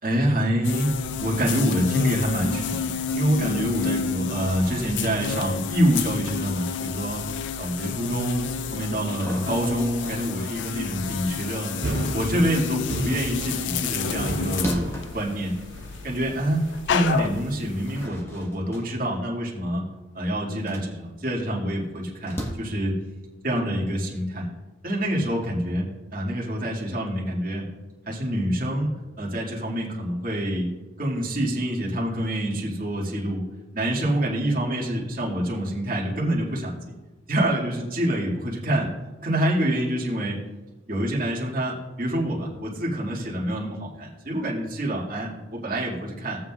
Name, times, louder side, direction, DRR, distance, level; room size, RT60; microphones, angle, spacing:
voice 1, 0.0-7.2 7.6-11.8 12.1-15.5 16.0-19.8 20.1-22.9 23.4-24.5 24.8-25.8 26.1-27.6 28.1-30.7 31.0-33.5 33.7-36.8 37.3-38.9 39.2-40.4 40.9-46.4, right 1 dB, 45° right, -4 dB, 2.2 m, -26 dB
sound 1, 0.6-18.1, left 6 dB, 75° left, 0.4 m, -30 dB
sound 2, 9.0-12.5 12.9-16.4 16.8-16.9 17.6-22.5, equal, 15° left, 1.2 m, -38 dB
sound 3, 11.8-16.8, right 2 dB, 70° right, 0.9 m, -33 dB
17.0 x 7.5 x 2.4 m, 1.2 s
head